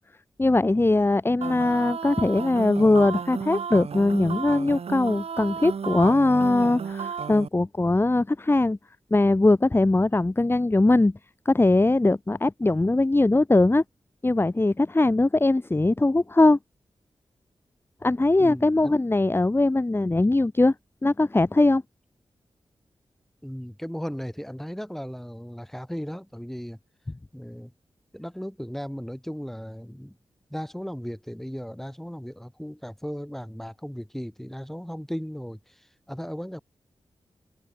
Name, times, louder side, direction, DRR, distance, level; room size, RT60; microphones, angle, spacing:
voice 1, 0.4-8.8 9.1-11.1 11.4-13.8 14.2-16.6 18.0-20.7 21.0-21.8, left 2 dB, 20° left, 1.0 m, -21 dB
sound 1, 1.4-7.5, right 6 dB, 80° right, 1.6 m, -33 dB
voice 2, 18.4-18.9 23.4-26.8 27.3-27.7 28.1-30.1 30.5-35.7 36.1-36.6, equal, 5° left, 3.8 m, -36 dB
cardioid pair, 60°, 10 cm